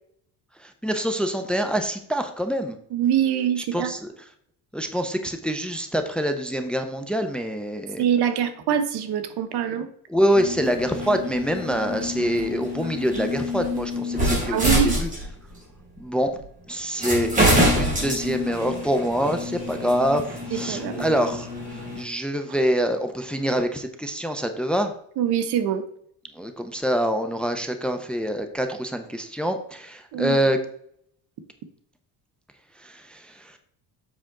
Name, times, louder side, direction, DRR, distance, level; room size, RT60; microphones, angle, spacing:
voice 1, 0.6-2.8 3.7-4.1 4.7-8.0 10.1-15.1 16.0-16.4 16.7-17.3 17.7-24.9 26.3-30.6 32.8-33.6, equal, ahead, 7 dB, 0.6 m, -25 dB
voice 2, 2.9-3.9 8.0-9.9 14.5-14.9 20.5-21.0 25.2-25.8 30.1-30.4, right 9 dB, 70° right, 9 dB, 1.1 m, -24 dB
sound 1, 10.3-15.6 16.4-16.5 17.0-22.0, equal, 20° right, 3.1 m, -26 dB
7.6 x 5.8 x 3.8 m, 0.66 s
cardioid pair, 145°, 40 cm